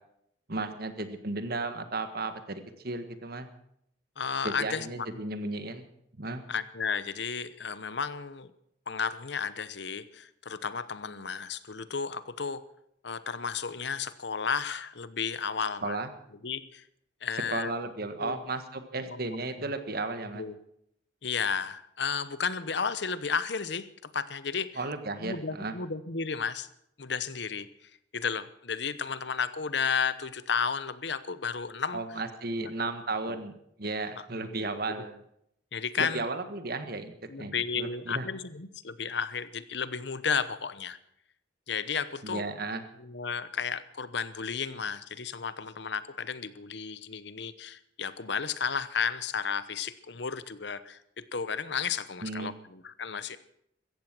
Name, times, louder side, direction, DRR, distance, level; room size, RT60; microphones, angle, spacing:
voice 1, 0.5-3.5 4.4-5.9 6.2-6.4 15.8-16.1 17.5-20.4 24.7-25.7 31.9-33.5 33.8-35.2 36.0-37.1 37.4-38.2 42.2-42.8 52.2-52.5, right 3 dB, 55° right, 9 dB, 1.6 m, -34 dB
voice 2, 4.2-5.2 6.5-8.5 8.9-12.6 13.0-16.0 16.4-16.8 17.2-17.7 18.2-18.4 19.1-19.4 20.3-20.6 21.2-24.8 25.2-26.7 27.0-32.0 32.5-32.7 33.3-33.4 34.3-34.6 35.7-36.3 37.3-41.0 41.7-42.4 43.0-53.4, left 6 dB, 60° left, 14 dB, 0.9 m, -33 dB
16.0 x 14.5 x 6.1 m, 0.72 s
head